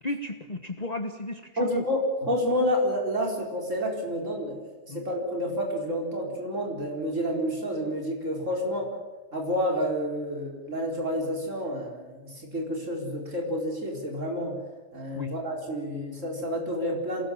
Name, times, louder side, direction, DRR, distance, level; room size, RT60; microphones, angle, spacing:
voice 1, 0.0-1.8 4.9-5.0 15.2-15.3, left 1 dB, 30° left, 6 dB, 1.4 m, -34 dB
voice 2, 1.6-8.9 9.3-14.6 14.9-17.3, equal, 75° right, 0 dB, 4.9 m, -29 dB
27.5 x 20.0 x 7.3 m, 1.2 s
omnidirectional pair, 1.3 m